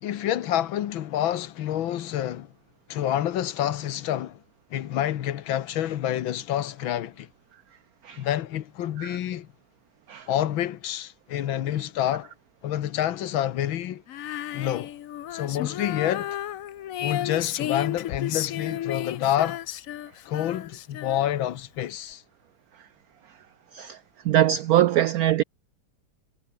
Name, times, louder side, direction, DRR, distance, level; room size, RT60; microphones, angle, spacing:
voice 1, 0.0-2.5 2.9-4.4 4.7-7.3 8.2-9.5 10.3-12.3 12.6-14.0 14.5-14.9 15.3-16.4 17.0-19.6 20.3-22.2, left 11 dB, 80° left, 1.8 m, -28 dB
Female singing, 14.1-21.6, left 12 dB, 65° left, 0.8 m, -33 dB
voice 2, 24.2-25.4, right 12 dB, 85° right, 0.8 m, -22 dB
omnidirectional pair, 2.1 m